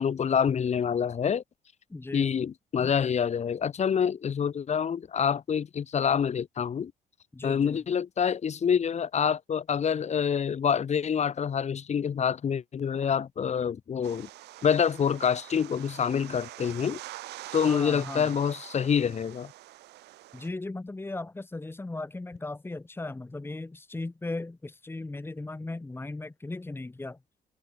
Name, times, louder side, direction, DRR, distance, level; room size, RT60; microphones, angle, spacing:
voice 1, 0.0-1.4 2.1-6.9 7.4-14.3 14.6-17.0 17.5-19.5, left 7 dB, 40° left, 6.8 m, -27 dB
voice 2, 1.9-2.3 7.3-7.8 17.7-18.3 20.3-27.2, left 2 dB, 15° left, 3.2 m, -37 dB
sound 1, 14.0-20.5, right 16 dB, 80° right, 7.9 m, -44 dB
cardioid pair, 110°, 17 cm